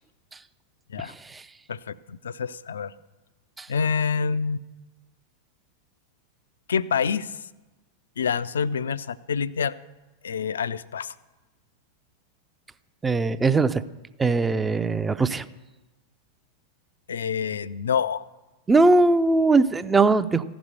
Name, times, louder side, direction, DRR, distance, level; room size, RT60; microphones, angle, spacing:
voice 1, 1.0-1.5 3.6-3.7 13.0-13.8 14.2-15.5 18.7-20.4, right 3 dB, 15° right, 12 dB, 0.5 m, -20 dB
voice 2, 1.7-2.9 3.7-4.6 6.7-7.4 8.2-9.7 10.2-11.1 17.1-18.3, left 6 dB, 65° left, 17 dB, 0.4 m, -27 dB
15.0 x 6.1 x 9.7 m, 1.1 s
figure-of-eight pair, 90°, 0 cm